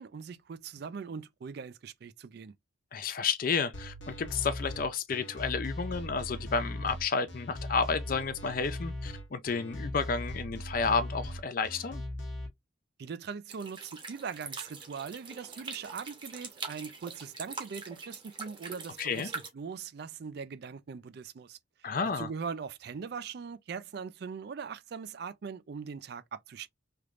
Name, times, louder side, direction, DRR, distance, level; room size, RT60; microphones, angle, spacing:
voice 1, 0.0-2.5 13.0-21.9 22.2-26.7, right 6 dB, 55° right, 0.3 m, -41 dB
voice 2, 2.9-12.0 19.0-19.3 21.8-22.3, left 5 dB, 45° left, 0.4 m, -31 dB
sound 1, 3.7-12.5, left 1 dB, 70° left, 0.9 m, -39 dB
sound 2, 13.5-19.5, right 4 dB, 25° right, 0.9 m, -43 dB
3.3 x 3.0 x 2.4 m
head